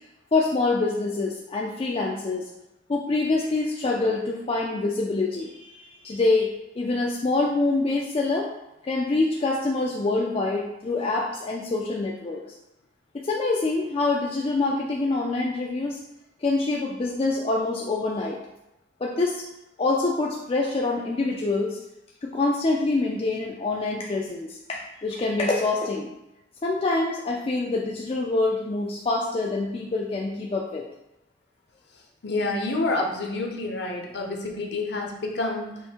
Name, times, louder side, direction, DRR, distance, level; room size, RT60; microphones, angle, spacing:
voice 1, 0.3-2.5 2.9-8.5 8.8-12.4 13.1-16.0 16.4-18.4 19.0-19.4 19.8-21.8 22.2-26.1 26.6-30.9, left 3 dB, 30° left, -2 dB, 0.3 m, -25 dB
voice 2, 32.2-35.8, left 2 dB, 60° left, 1 dB, 0.7 m, -28 dB
5.4 x 2.1 x 4.4 m, 0.90 s
head